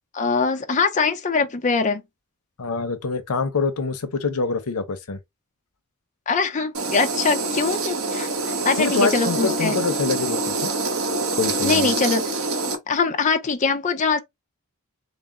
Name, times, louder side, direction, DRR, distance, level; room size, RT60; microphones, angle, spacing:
voice 1, 0.1-2.0 6.3-9.8 11.6-12.3 12.9-14.2, left 4 dB, 35° left, 0.5 m, -22 dB
voice 2, 2.6-5.2 8.8-10.7 11.4-11.9, left 4 dB, 90° left, 0.7 m, -25 dB
sound 1, 6.7-12.8, right 3 dB, 75° right, 1.0 m, -25 dB
4.1 x 2.0 x 3.5 m
head